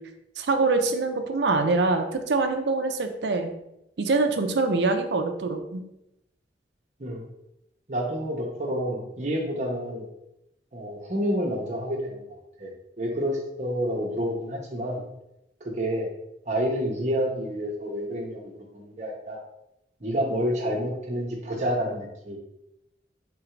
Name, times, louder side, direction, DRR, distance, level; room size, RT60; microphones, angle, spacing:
voice 1, 0.4-3.5 4.0-5.8, right 3 dB, 75° right, 6 dB, 0.5 m, -24 dB
voice 2, 7.9-10.1 10.7-12.7 13.0-15.0 15.6-16.1 16.5-19.4 20.0-22.4, equal, 40° right, 0 dB, 0.8 m, -29 dB
3.8 x 2.6 x 4.4 m, 0.85 s
head